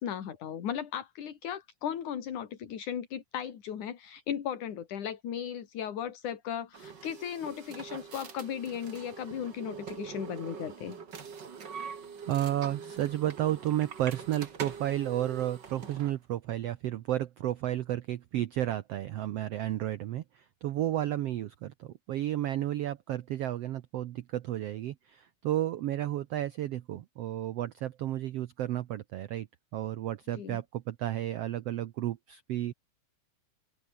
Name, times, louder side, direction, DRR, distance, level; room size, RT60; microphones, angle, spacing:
voice 1, 0.0-11.0 30.3-30.6, left 9 dB, 65° left, 3.6 m, -36 dB
sound 1, 6.7-16.2, right 6 dB, 35° right, 2.4 m, -44 dB
voice 2, 12.3-29.5 29.7-32.7, right 13 dB, 85° right, 1.4 m, -32 dB
open air
omnidirectional pair, 3.9 m